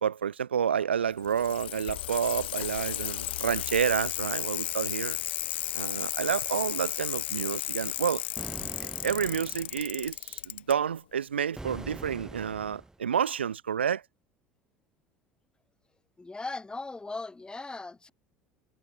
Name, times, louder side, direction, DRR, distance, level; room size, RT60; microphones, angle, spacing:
voice 1, 0.0-5.2 5.7-8.2 8.8-14.0, right 8 dB, 85° right, 0.9 m, -29 dB
Bicycle, 1.1-10.7 11.8-11.9, left 15 dB, 75° left, 0.6 m, -34 dB
sound 1, 8.4-9.8 11.6-13.0, right 2 dB, 10° right, 3.6 m, -43 dB
voice 2, 16.2-18.1, left 3 dB, 15° left, 2.7 m, -38 dB
hypercardioid pair, 70°, 6 cm